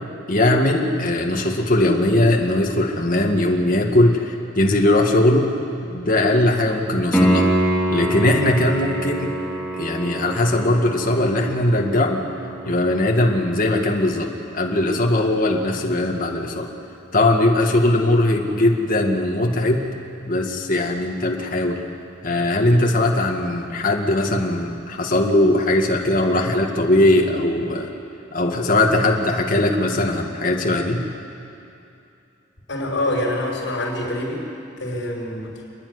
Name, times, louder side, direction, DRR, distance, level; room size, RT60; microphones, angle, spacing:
voice 1, 0.3-5.5 5.8-7.5 7.9-9.3 9.7-12.2 12.6-14.3 14.5-16.7 17.1-19.8 20.2-21.8 22.2-27.9 28.3-31.0, left 1 dB, 45° left, 1 dB, 2.0 m, -19 dB
Piano, 7.1-17.8 21.1-21.2, equal, 5° left, 2.5 m, -27 dB
voice 2, 32.7-34.4 34.8-35.5, left 1 dB, 70° left, -3 dB, 5.4 m, -25 dB
29.0 x 10.5 x 9.7 m, 2.7 s
head